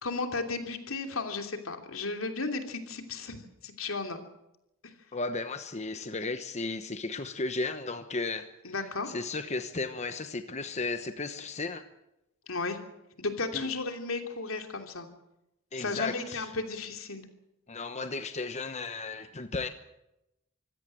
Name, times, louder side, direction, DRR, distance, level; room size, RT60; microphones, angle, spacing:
voice 1, 0.0-3.4 3.6-4.2 4.8-4.9 8.6-9.1 12.5-12.8 13.2-15.1 15.8-17.3, left 3 dB, 80° left, 3.0 m, -34 dB
voice 2, 5.1-8.7 9.1-11.8 13.5-13.7 15.7-16.5 17.7-19.7, left 3 dB, 35° left, 1.0 m, -34 dB
25.5 x 16.5 x 7.7 m
head